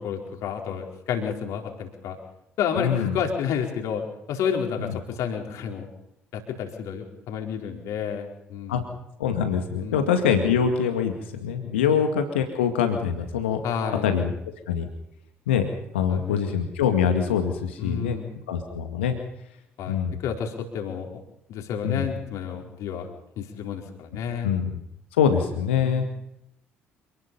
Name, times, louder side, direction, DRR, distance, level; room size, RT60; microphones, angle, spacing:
voice 1, 0.0-2.2 2.6-5.9 6.3-8.8 9.8-10.1 11.8-12.0 13.6-14.1 16.1-16.4 17.8-18.3 19.8-21.2 21.5-23.1 23.4-24.6 25.8-26.1, left 7 dB, 60° left, 2 dB, 4.6 m, -30 dB
voice 2, 2.8-3.2 4.8-4.9 8.7-8.8 9.2-13.6 14.0-14.3 14.7-14.9 15.5-15.7 15.9-18.2 18.5-19.2 19.9-20.2 21.8-22.1 24.4-24.8 25.2-26.1, left 7 dB, 75° left, 6 dB, 2.1 m, -24 dB
27.5 x 20.0 x 5.6 m, 0.82 s
figure-of-eight pair, 50°, 6 cm